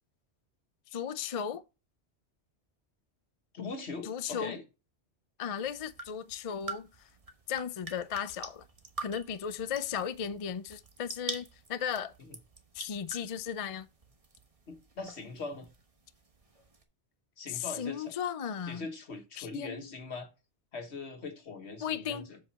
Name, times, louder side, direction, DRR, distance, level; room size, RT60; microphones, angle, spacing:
voice 1, 0.9-1.6 4.0-4.6 5.4-7.1 7.5-8.7 9.0-12.1 12.7-13.9 17.5-18.9 19.4-19.8 21.8-22.3, left 8 dB, 45° left, 0.5 m, -36 dB
voice 2, 3.5-4.6 12.3-12.4 14.7-15.7 17.4-18.1 18.6-20.3 20.7-22.4, left 3 dB, 70° left, 1.6 m, -41 dB
sound 1, 5.6-16.8, right 3 dB, 30° right, 1.3 m, -47 dB
7.5 x 5.7 x 4.1 m
omnidirectional pair, 1.2 m